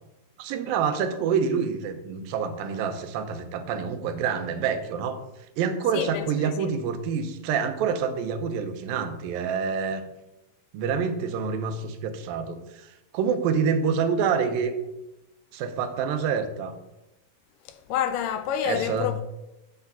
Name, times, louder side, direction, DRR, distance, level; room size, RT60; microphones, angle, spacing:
voice 1, 0.4-5.2 5.6-10.0 10.7-14.7 15.5-16.8 18.6-19.1, right 6 dB, 85° right, 2.6 m, -27 dB
voice 2, 5.9-6.7 17.7-19.2, left 9 dB, 80° left, 2.1 m, -29 dB
7.9 x 5.9 x 6.8 m
omnidirectional pair, 4.1 m